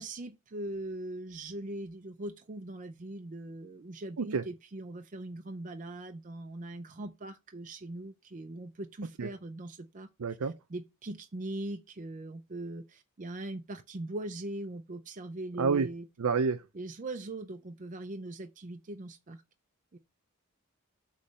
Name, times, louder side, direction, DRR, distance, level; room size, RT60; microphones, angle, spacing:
voice 1, 0.0-16.1 16.7-19.4 19.9-20.0, right 2 dB, 35° right, 0.6 m, -41 dB
voice 2, 10.2-10.5 15.6-15.9 16.2-16.6, right 5 dB, 85° right, 0.6 m, -28 dB
8.4 x 3.2 x 6.5 m
head